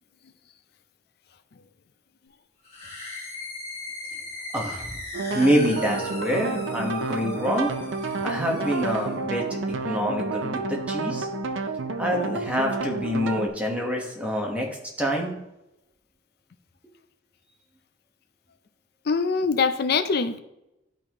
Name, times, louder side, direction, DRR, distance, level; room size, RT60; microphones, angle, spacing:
sound 1, 2.6-9.2, left 2 dB, 35° left, 1.8 m, -39 dB
voice 1, 4.5-5.0 5.3-7.7 8.2-11.3 12.0-14.7 15.0-15.3, equal, 5° right, -1 dB, 1.2 m, -26 dB
sound 2, 5.1-13.5, right 3 dB, 85° right, 0.6 m, -30 dB
voice 2, 19.1-20.4, left 5 dB, 55° left, 10 dB, 0.5 m, -23 dB
11.5 x 4.1 x 3.0 m, 0.88 s
head